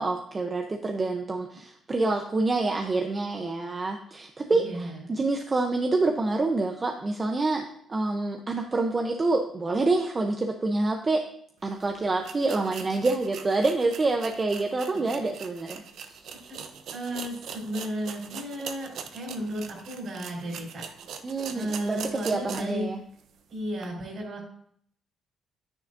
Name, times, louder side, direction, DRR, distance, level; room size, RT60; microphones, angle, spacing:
voice 1, 0.0-7.6 7.9-11.2 11.6-15.8 16.2-16.3 21.2-23.0, right 3 dB, 30° right, 4 dB, 0.8 m, -27 dB
voice 2, 4.5-5.1 15.1-15.2 16.3-16.6 16.9-20.8 21.5-22.9 23.5-24.4, equal, 60° right, -1 dB, 4.1 m, -34 dB
sound 1, 11.7-11.8 12.2-22.8 23.2-23.3 23.8-23.9, right 7 dB, 75° right, 0.7 m, -41 dB
9.6 x 9.6 x 2.7 m, 0.66 s
cardioid pair, 90°, 0 cm